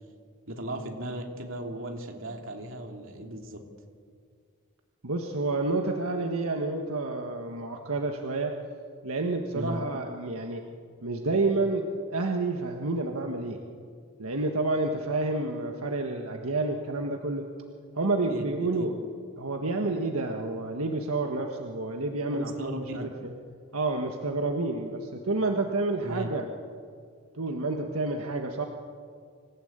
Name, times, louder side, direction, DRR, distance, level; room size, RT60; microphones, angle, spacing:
voice 1, 0.5-3.6 9.5-9.8 18.3-18.5 18.8-18.9 22.3-23.1 26.0-26.3, right 1 dB, 65° right, 2 dB, 3.0 m, -36 dB
voice 2, 5.0-8.5 9.0-10.6 11.0-13.6 14.2-17.5 17.9-18.9 19.4-23.3 23.7-26.5 27.4-28.6, right 2 dB, 85° right, 3 dB, 1.6 m, -29 dB
26.5 x 16.0 x 8.9 m, 2.1 s
head